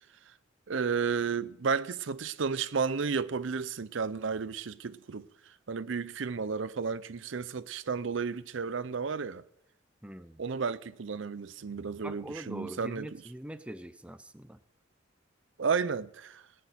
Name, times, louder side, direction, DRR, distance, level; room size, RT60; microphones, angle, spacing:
voice 1, 0.7-5.3 5.7-9.4 10.4-13.1 15.6-16.4, right 5 dB, 70° right, 0.6 m, -32 dB
voice 2, 10.0-10.4 12.0-14.6, right 1 dB, 5° right, 0.5 m, -43 dB
18.5 x 6.6 x 9.1 m
head